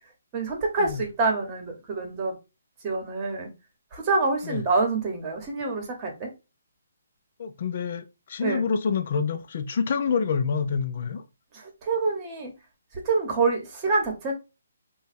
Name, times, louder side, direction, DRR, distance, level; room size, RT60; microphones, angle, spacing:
voice 1, 0.3-2.3 2.8-3.5 3.9-6.3 8.4-8.6 11.5-12.5 13.0-14.3, right 3 dB, 25° right, 1.1 m, -26 dB
voice 2, 7.4-11.2, left 6 dB, 50° left, 0.5 m, -27 dB
3.2 x 2.3 x 4.1 m
hypercardioid pair, 155°, 0 cm